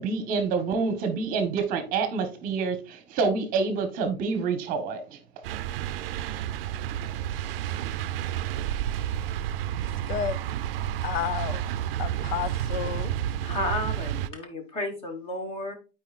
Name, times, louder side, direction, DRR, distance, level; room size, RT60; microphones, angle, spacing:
voice 1, 0.0-5.0, right 4 dB, 30° right, 1.0 m, -27 dB
sound 1, 5.4-14.3, right 11 dB, 70° right, 0.5 m, -30 dB
voice 2, 10.1-10.4 11.0-11.7 12.0-13.1, left 11 dB, 80° left, 0.6 m, -31 dB
voice 3, 13.4-15.7, left 2 dB, 20° left, 1.1 m, -32 dB
12.0 x 4.7 x 2.4 m
supercardioid pair, 165°, 30 cm